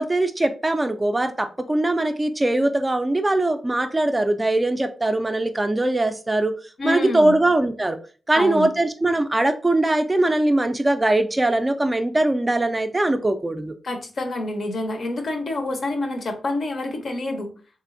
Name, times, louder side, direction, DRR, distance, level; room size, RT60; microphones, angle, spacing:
voice 1, 0.0-6.5 6.8-8.0 8.3-13.7, right 2 dB, 20° right, 0.3 m, -21 dB
voice 2, 6.8-7.4 8.4-8.7 13.8-17.5, left 2 dB, 60° left, 0.6 m, -27 dB
3.3 x 3.0 x 2.5 m
wide cardioid pair, 105°, 0 cm